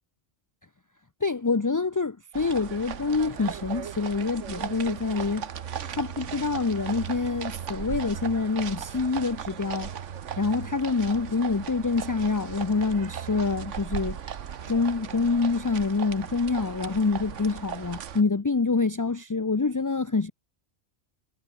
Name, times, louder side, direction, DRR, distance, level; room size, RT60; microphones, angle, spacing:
voice 1, 1.2-5.5 5.9-9.9 10.4-14.2 14.7-20.3, left 4 dB, 25° left, 0.5 m, -26 dB
sound 1, 2.3-18.2, right 8 dB, 80° right, 1.4 m, -37 dB
omnidirectional pair, 1.2 m